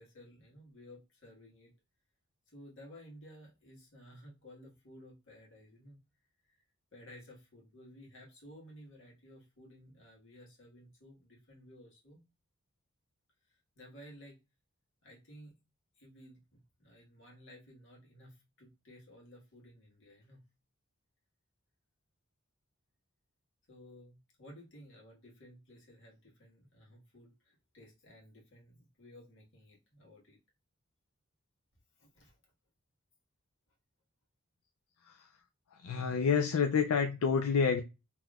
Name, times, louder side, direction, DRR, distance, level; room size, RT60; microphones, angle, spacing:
voice 1, 0.0-1.7 2.5-6.0 6.5-6.6 6.9-12.2 13.7-14.3 15.0-15.5 16.0-20.5 23.7-30.4 32.0-32.3, equal, 65° left, 1.5 m, -55 dB
voice 2, 35.7-37.8, left 6 dB, 80° left, 0.4 m, -29 dB
3.7 x 3.0 x 2.3 m
head